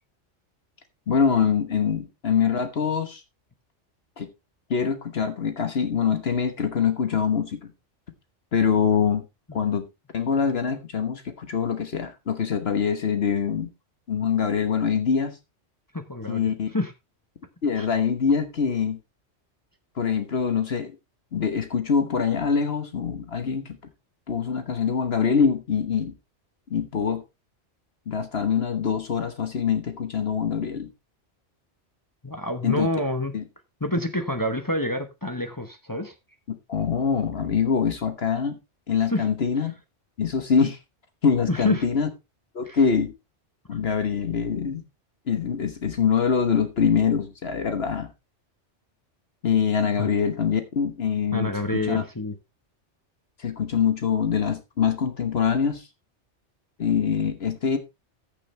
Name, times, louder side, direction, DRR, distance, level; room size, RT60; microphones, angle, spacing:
voice 1, 1.1-3.2 4.2-4.3 4.7-7.7 8.5-9.2 9.5-9.8 10.1-13.7 14.1-15.4 16.3-16.7 17.6-19.0 20.0-20.9 21.3-23.6 24.3-26.1 26.7-27.2 28.1-30.9 32.6-32.9 33.3-33.4 36.7-38.6 38.9-39.7 40.2-40.8 41.2-42.1 42.5-43.1 43.7-44.8 45.3-48.1 49.4-51.5 51.9-52.0 53.4-55.9 56.8-57.8, left 6 dB, 60° left, 1.4 m, -24 dB
voice 2, 15.9-16.9 17.8-17.9 32.2-33.3 33.8-36.1 39.1-39.3 41.5-41.8 42.6-42.8 50.0-50.1 51.3-52.3, left 1 dB, 20° left, 1.1 m, -27 dB
14.5 x 6.9 x 3.2 m
omnidirectional pair, 1.2 m